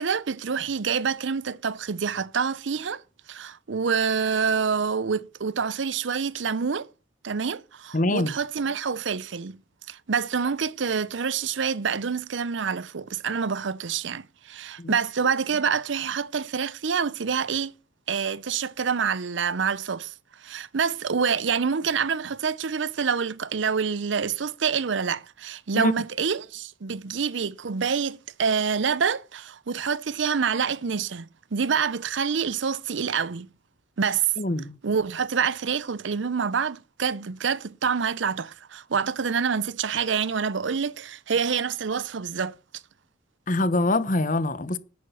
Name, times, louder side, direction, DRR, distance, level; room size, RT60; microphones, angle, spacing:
voice 1, 0.0-3.0 3.3-6.9 7.2-9.6 9.9-17.7 18.1-20.1 20.4-33.5 34.0-34.3 34.8-42.6, right 6 dB, 75° right, 0.6 m, -27 dB
voice 2, 7.9-8.3 14.8-14.9 25.7-25.9 34.4-34.8 43.5-44.8, left 2 dB, 40° left, 1.0 m, -24 dB
11.0 x 9.7 x 5.6 m
head